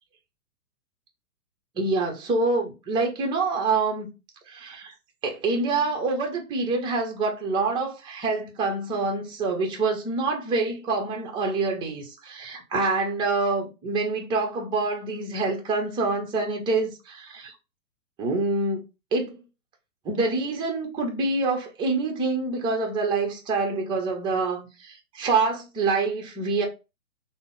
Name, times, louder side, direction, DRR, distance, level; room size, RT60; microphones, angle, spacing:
voice 1, 1.8-4.1 4.5-4.9 5.2-17.5 18.2-18.8 19.1-19.4 20.0-26.6, right 3 dB, 10° right, 0.6 m, -26 dB
3.7 x 2.0 x 3.7 m
hypercardioid pair, 120°, 44 cm